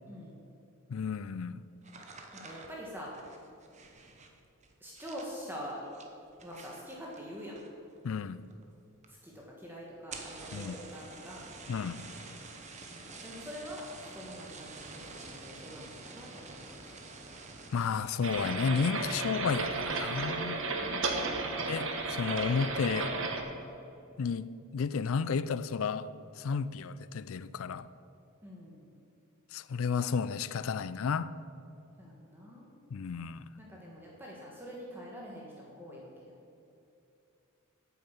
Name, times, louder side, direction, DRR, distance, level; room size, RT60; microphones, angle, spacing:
voice 1, 0.1-0.4 2.4-3.2 4.8-5.8 6.4-7.6 9.1-11.5 12.9-17.0 20.8-22.0 28.4-28.9 32.0-32.7 33.6-36.3, equal, 10° right, 1.4 m, -45 dB
voice 2, 0.9-1.6 8.0-8.4 10.5-10.8 11.7-12.0 17.7-20.6 21.7-23.2 24.2-27.9 29.5-31.3 32.9-33.5, left 5 dB, 65° left, 0.4 m, -32 dB
sound 1, 1.8-7.9 8.2-8.7 9.0-9.1 9.4-9.5 10.0-18.3 18.7-19.1 19.5-19.9, right 3 dB, 30° right, 1.0 m, -49 dB
sound 2, 18.2-23.4, right 3 dB, 60° right, 1.2 m, -33 dB
9.1 x 8.5 x 7.2 m
head